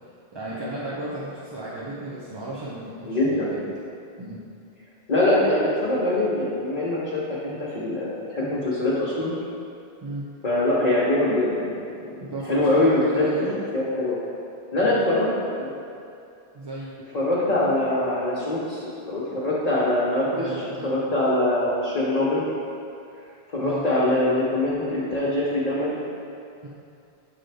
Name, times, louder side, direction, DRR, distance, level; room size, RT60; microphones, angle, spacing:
voice 1, 0.3-3.7 4.2-4.4 10.0-10.2 12.3-13.6 14.8-15.0 16.5-16.9 20.3-20.9 23.6-23.9 26.6-26.7, right 2 dB, 35° right, -7 dB, 0.5 m, -34 dB
voice 2, 3.0-3.5 5.1-9.3 10.4-13.3 13.7-14.2 14.7-15.3 15.6-15.7 17.1-20.4 20.8-22.4 23.5-26.0, left 1 dB, 45° left, -8 dB, 0.9 m, -23 dB
7.8 x 3.9 x 3.3 m, 2.6 s
omnidirectional pair, 1.1 m